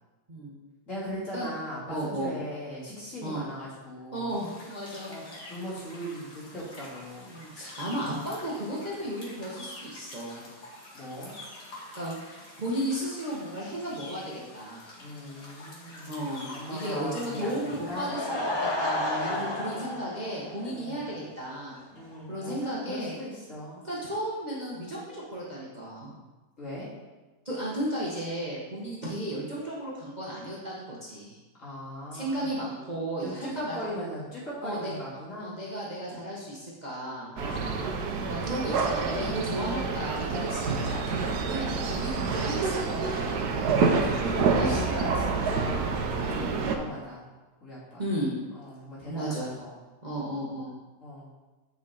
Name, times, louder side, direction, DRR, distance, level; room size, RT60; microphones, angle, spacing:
voice 1, 0.9-4.4 5.1-7.4 10.9-11.3 15.0-16.2 16.5-18.2 19.2-19.9 20.7-21.0 21.9-23.8 26.6-26.9 31.6-32.5 33.2-35.6 37.4-38.3 39.2-40.0 40.3-40.8 41.5-42.1 43.4-47.3 47.6-48.0 48.5-49.8 51.0-51.3, equal, 45° left, -8 dB, 3.1 m, -39 dB
voice 2, 1.9-2.3 3.2-3.4 4.1-5.1 7.3-10.5 11.9-14.8 16.1-21.8 22.3-23.1 23.8-26.2 27.4-31.4 32.1-33.8 34.6-34.9 35.4-37.3 38.3-43.4 44.2-45.1 46.3-46.5 48.0-48.3 49.1-49.5 50.0-50.7, right 1 dB, 25° right, -6 dB, 1.4 m, -34 dB
sound 1, 4.3-18.1, left 1 dB, 70° left, 2.5 m, -47 dB
Laughter / Crowd, 17.7-21.2 21.5-21.6 22.2-22.3 22.4-22.5, left 1 dB, 25° left, 0.6 m, -32 dB
sound 2, 37.4-46.7, right 4 dB, 70° right, 1.3 m, -28 dB
9.5 x 5.0 x 4.3 m, 1.2 s
omnidirectional pair, 1.8 m